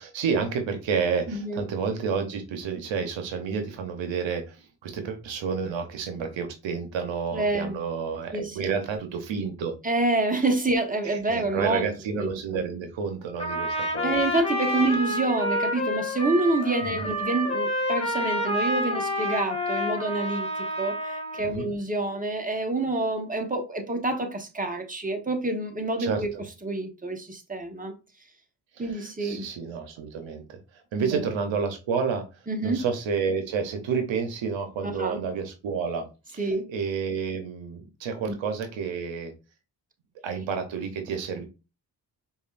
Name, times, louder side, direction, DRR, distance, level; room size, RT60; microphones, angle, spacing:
voice 1, 0.0-9.7 11.0-14.2 16.8-17.1 21.5-21.7 26.0-26.4 28.8-30.6 30.9-32.2 32.6-39.3 40.2-41.4, right 6 dB, 80° right, 0.8 m, -30 dB
voice 2, 1.3-1.6 7.3-7.8 8.3-8.7 9.8-11.9 12.2-12.6 14.0-26.3 26.6-27.9 28.8-29.5 31.1-31.3 32.5-32.8 34.8-35.2 36.4-36.7 38.3-38.4, right 2 dB, 20° right, 1.1 m, -27 dB
Trumpet, 13.4-21.5, left 1 dB, 15° left, 1.8 m, -28 dB
4.9 x 2.5 x 2.5 m
supercardioid pair, 40°, 45 cm